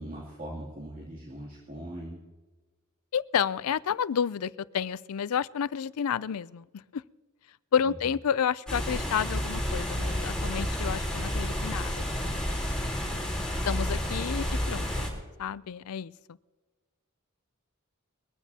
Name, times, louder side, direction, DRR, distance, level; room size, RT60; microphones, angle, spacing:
voice 1, 0.0-2.2 7.8-7.9, right 1 dB, 40° right, -4 dB, 2.9 m, -40 dB
voice 2, 3.1-6.6 6.9-7.0 7.7-13.0 13.7-15.1 15.4-16.1, left 8 dB, 85° left, 19 dB, 0.4 m, -30 dB
sound 1, 8.7-15.1, equal, 5° left, 3.6 m, -30 dB
22.0 x 15.0 x 2.8 m, 1.2 s
head